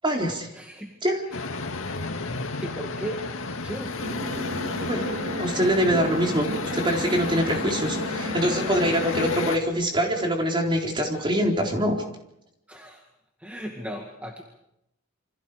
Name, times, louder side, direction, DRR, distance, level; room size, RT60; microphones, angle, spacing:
voice 1, 0.0-0.5 1.0-1.2 4.9-5.1 5.4-12.0, equal, 25° right, 1 dB, 4.1 m, -24 dB
voice 2, 0.5-1.0 2.6-3.2 3.6-4.0 12.7-13.0 13.4-14.4, right 1 dB, 5° right, 1 dB, 2.0 m, -36 dB
sound 1, 1.3-9.6, left 3 dB, 75° left, 1.9 m, -32 dB
sound 2, 4.0-9.4, equal, 45° right, 2.4 m, -34 dB
28.5 x 25.5 x 5.0 m, 0.81 s
head